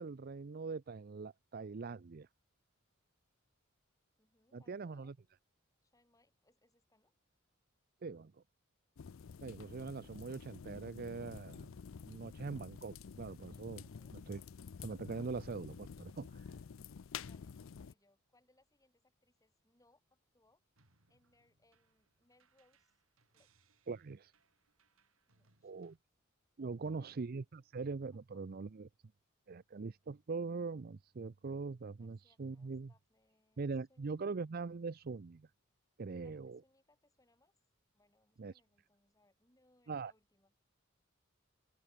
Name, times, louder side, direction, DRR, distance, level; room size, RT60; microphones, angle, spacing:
voice 1, 0.0-2.3 4.5-5.1 8.0-8.3 9.4-11.7 12.1-13.8 14.3-14.4 14.8-16.4 23.9-24.3 25.6-26.0 26.6-28.9 29.5-32.9 33.6-35.5 36.0-36.6 38.4-38.5 39.9-40.1, right 4 dB, 45° right, 0.5 m, -42 dB
voice 2, 4.2-5.1 5.8-7.1 13.8-14.2 17.2-20.6 21.1-23.0 23.3-23.5 25.3-25.8 26.7-27.2 28.1-28.6 32.0-34.1 36.2-37.5 37.9-40.5, left 2 dB, 15° left, 7.3 m, -73 dB
sound 1, 9.0-17.9, left 6 dB, 75° left, 0.5 m, -50 dB
sound 2, 20.8-26.0, right 4 dB, 90° right, 6.3 m, -75 dB
open air
head